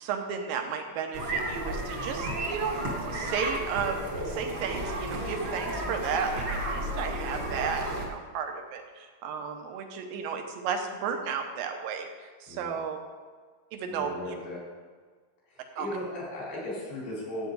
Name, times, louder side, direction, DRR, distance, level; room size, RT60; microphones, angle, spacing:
voice 1, 0.0-4.0 4.3-13.0 13.7-14.4 15.8-15.9, right 6 dB, 70° right, 5 dB, 2.4 m, -33 dB
sound 1, 1.1-8.1, right 1 dB, 50° right, 1.2 m, -33 dB
voice 2, 13.9-14.6 15.5-17.5, left 1 dB, 80° left, -6 dB, 6.3 m, -37 dB
15.5 x 8.1 x 4.1 m, 1.5 s
omnidirectional pair, 4.7 m